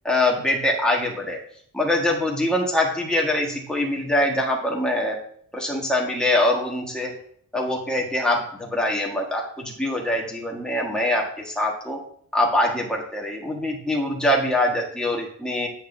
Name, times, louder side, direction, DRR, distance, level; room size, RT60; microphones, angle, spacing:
voice 1, 0.0-1.4 1.7-5.2 5.5-7.1 7.5-12.0 12.3-15.7, left 1 dB, ahead, -2 dB, 1.6 m, -23 dB
10.0 x 7.9 x 2.7 m, 0.63 s
wide cardioid pair, 175°, 33 cm